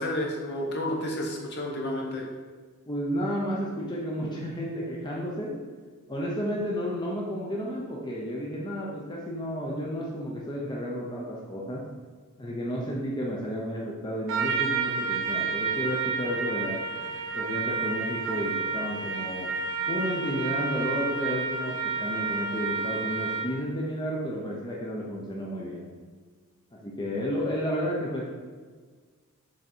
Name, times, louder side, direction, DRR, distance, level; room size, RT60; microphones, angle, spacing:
voice 1, 0.0-2.2, left 1 dB, 50° left, -1 dB, 1.0 m, -31 dB
voice 2, 2.9-5.6 6.1-11.8 12.4-16.8 17.3-19.5 19.9-25.8 26.7-28.3, equal, 20° left, -4 dB, 0.7 m, -32 dB
Trumpet, 14.3-23.6, right 4 dB, 60° right, 0.7 m, -30 dB
6.4 x 3.6 x 4.4 m, 1.5 s
head